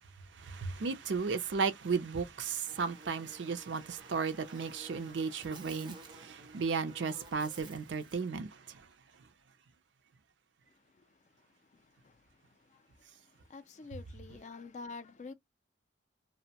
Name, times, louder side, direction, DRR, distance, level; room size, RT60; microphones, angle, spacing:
voice 1, 0.3-8.9, right 5 dB, 85° right, 0.5 m, -35 dB
Buzz, 2.7-8.3, right 2 dB, 25° right, 0.4 m, -53 dB
voice 2, 11.7-12.9 13.5-15.3, left 4 dB, 40° left, 0.3 m, -48 dB
2.6 x 2.0 x 2.8 m
head